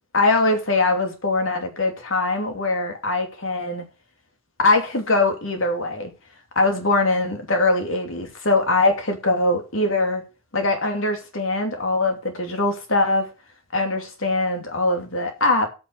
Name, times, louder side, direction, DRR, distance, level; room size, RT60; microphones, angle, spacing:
voice 1, 0.1-3.8 4.6-6.1 6.5-10.2 10.5-13.3 13.7-15.7, left 2 dB, 75° left, 2.8 m, -22 dB
8.8 x 6.6 x 6.8 m
head